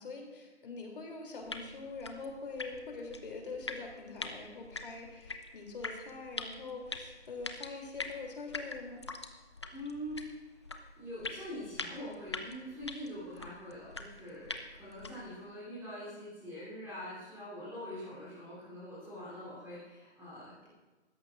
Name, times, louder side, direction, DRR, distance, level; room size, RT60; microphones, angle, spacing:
voice 1, 0.0-9.0, left 3 dB, 50° left, 1 dB, 3.2 m, -44 dB
sound 1, 1.4-15.4, left 3 dB, 25° left, 0.5 m, -44 dB
voice 2, 9.7-10.2 11.0-20.7, equal, 5° right, -10 dB, 3.4 m, -44 dB
18.5 x 14.0 x 2.6 m, 1.2 s
figure-of-eight pair, 155°, 35 cm